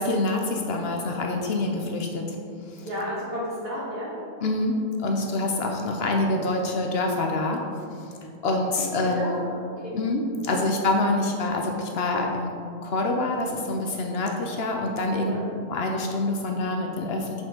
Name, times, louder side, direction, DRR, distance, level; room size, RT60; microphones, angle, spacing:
voice 1, 0.0-2.4 2.7-2.9 4.4-7.6 8.4-9.4 9.9-12.6 12.8-15.3 15.7-17.4, left 2 dB, 60° left, 2 dB, 0.7 m, -26 dB
voice 2, 2.8-4.1 8.8-10.0 10.4-10.6 15.2-15.5, equal, 45° right, -7 dB, 1.9 m, -33 dB
6.2 x 4.4 x 3.7 m, 2.5 s
omnidirectional pair, 1.4 m